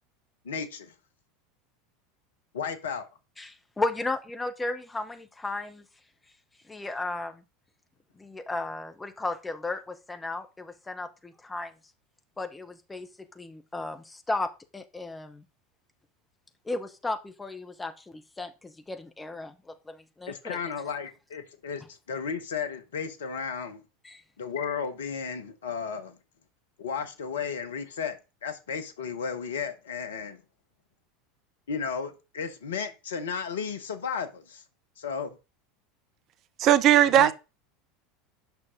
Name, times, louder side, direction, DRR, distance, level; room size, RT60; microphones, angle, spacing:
voice 1, 0.4-0.9 2.5-3.1 20.3-23.8 24.4-26.2 26.8-30.4 31.7-34.6 35.0-35.4 37.0-37.3, left 6 dB, 65° left, 1.1 m, -34 dB
voice 2, 3.4-5.8 6.6-7.4 8.1-11.7 12.4-15.4 16.6-20.6 24.0-24.2, left 2 dB, 10° left, 1.2 m, -35 dB
voice 3, 36.6-37.3, right 11 dB, 40° right, 0.5 m, -18 dB
8.8 x 6.1 x 3.8 m
figure-of-eight pair, 75°, 0 cm